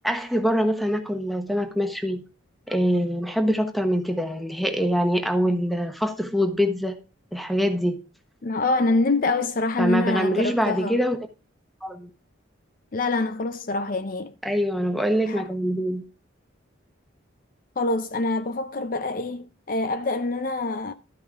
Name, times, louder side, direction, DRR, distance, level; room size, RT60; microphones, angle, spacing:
voice 1, 0.0-2.2 2.7-7.0 7.3-8.0 9.8-11.3 11.8-12.1 14.4-16.0, equal, ahead, 1.1 m, -24 dB
voice 2, 8.4-11.0 12.9-14.3 15.3-15.4 17.8-20.9, left 2 dB, 40° left, 0.5 m, -25 dB
12.5 x 5.2 x 4.9 m
head